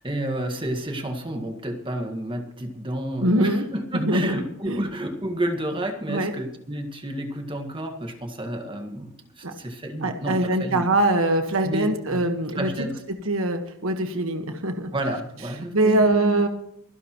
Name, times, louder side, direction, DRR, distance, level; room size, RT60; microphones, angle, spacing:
voice 1, 0.0-10.9 11.6-12.2 12.6-13.0 14.9-16.4, right 1 dB, 25° right, 4 dB, 1.8 m, -30 dB
voice 2, 3.2-3.6 3.9-4.4 4.7-4.9 6.1-6.3 9.4-9.5 10.0-12.7 13.2-14.9 15.7-16.5, right 1 dB, 70° right, 6 dB, 1.4 m, -23 dB
25.5 x 11.0 x 3.1 m, 0.76 s
head